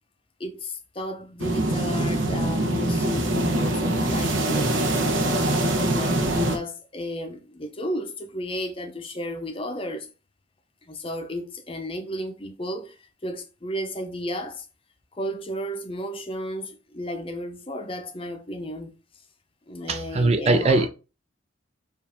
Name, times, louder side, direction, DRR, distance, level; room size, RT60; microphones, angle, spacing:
voice 1, 0.4-4.9 5.5-10.1 10.8-14.7 15.1-19.0 19.7-20.9, left 1 dB, 25° left, 0.7 m, -33 dB
sound 1, 1.4-6.6, right 1 dB, 70° right, 0.9 m, -24 dB
voice 2, 19.9-20.9, right 2 dB, 30° right, 0.4 m, -21 dB
4.8 x 2.6 x 3.3 m
head